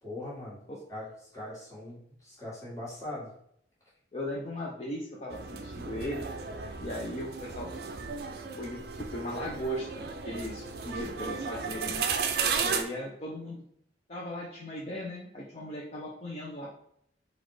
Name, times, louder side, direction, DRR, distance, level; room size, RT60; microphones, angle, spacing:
voice 1, 0.0-0.6 0.9-3.3, left 1 dB, 20° left, -8 dB, 1.9 m, -41 dB
voice 2, 4.1-6.3 6.8-7.7 8.6-12.0 12.6-13.6 14.1-16.7, left 1 dB, 40° left, -4 dB, 0.6 m, -37 dB
sound 1, 5.3-12.8, right 5 dB, 60° right, 0.4 m, -34 dB
4.1 x 2.5 x 4.7 m, 0.71 s
head